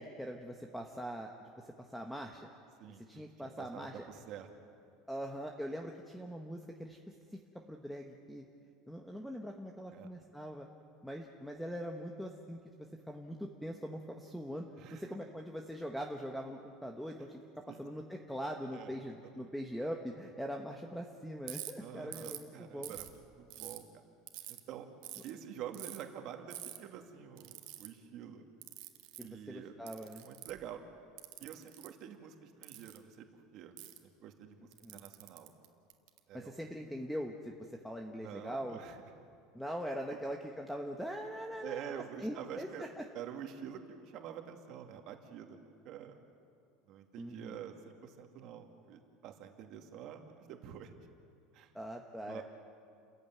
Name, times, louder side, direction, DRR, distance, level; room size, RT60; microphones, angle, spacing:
voice 1, 0.0-1.3 1.9-2.5 3.1-4.0 5.1-7.0 7.7-8.5 8.9-10.7 11.0-12.6 13.1-22.9 29.2-30.2 34.8-35.0 36.3-38.8 39.5-43.0 47.2-47.6 51.7-52.4, equal, ahead, 3 dB, 1.2 m, -42 dB
voice 2, 2.8-4.5 9.9-10.1 14.8-15.1 17.7-17.9 18.7-19.0 19.2-19.5 21.8-23.1 23.4-24.0 24.5-24.9 25.2-28.5 29.2-29.7 30.2-30.8 31.4-33.7 34.0-35.5 36.3-36.5 38.2-39.0 40.1-40.2 41.6-42.9 43.1-46.2 46.9-50.9 51.5-51.7 52.2-52.4, right 9 dB, 45° right, 5 dB, 2.3 m, -47 dB
Ratchet pawl, 21.5-21.7 22.1-22.4 22.8-23.8 24.3-24.6 25.0-25.3 25.7-26.0 26.5-26.8 27.4-27.9 28.6-29.3 29.9-30.6 31.2-31.9 32.6-33.0 33.8-34.0 34.7-36.2, right 16 dB, 65° right, 1.9 m, -46 dB
30.0 x 15.0 x 9.5 m, 2.4 s
cardioid pair, 160°, 0 cm